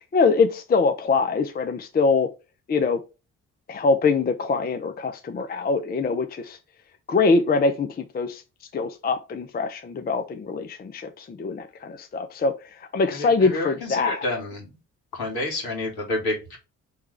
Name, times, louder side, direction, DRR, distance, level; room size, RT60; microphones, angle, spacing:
voice 1, 0.1-2.3 2.7-3.0 3.7-6.6 7.1-8.4 8.7-14.2, left 4 dB, 25° left, 0.5 m, -23 dB
voice 2, 13.1-14.7 15.1-16.6, left 2 dB, 60° left, 2.1 m, -29 dB
4.8 x 3.2 x 3.3 m
hypercardioid pair, 45°, 42 cm